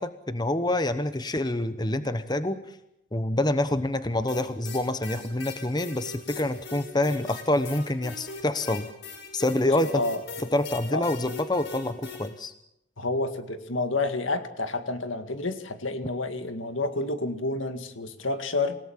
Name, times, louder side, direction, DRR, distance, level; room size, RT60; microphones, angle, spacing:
voice 1, 0.0-2.6 3.1-8.9 9.3-10.0 10.5-12.5, left 1 dB, 20° left, 11 dB, 1.0 m, -27 dB
sound 1, 4.3-12.3, left 4 dB, 60° left, 5.8 m, -41 dB
voice 2, 9.7-10.2 10.9-11.0 13.0-18.8, left 2 dB, 85° left, 8 dB, 2.1 m, -29 dB
28.0 x 18.0 x 7.3 m, 0.81 s
head